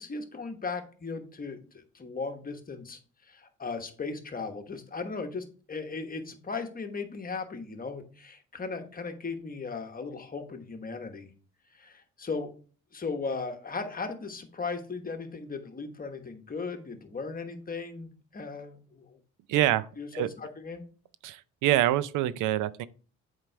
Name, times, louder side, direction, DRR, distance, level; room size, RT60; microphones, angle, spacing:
voice 1, 0.0-11.3 11.7-12.5 12.9-19.2 19.5-19.6 20.0-20.8, left 4 dB, 30° left, 1.2 m, -37 dB
voice 2, 19.5-19.9 20.1-20.3 21.2-22.9, right 13 dB, 85° right, 0.5 m, -25 dB
7.5 x 4.8 x 3.3 m
cardioid pair, 90°, 30 cm